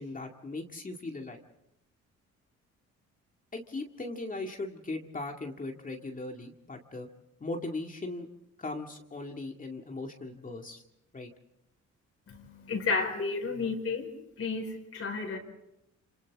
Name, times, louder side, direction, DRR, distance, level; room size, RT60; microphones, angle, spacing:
voice 1, 0.0-1.4 3.5-7.1 7.4-8.3 8.6-10.8 11.1-11.3, left 2 dB, 25° left, 2 dB, 2.2 m, -38 dB
voice 2, 12.3-14.1 14.4-15.4, left 4 dB, 50° left, 1 dB, 4.8 m, -32 dB
27.5 x 27.0 x 3.6 m, 0.86 s
cardioid pair, 90°, 30 cm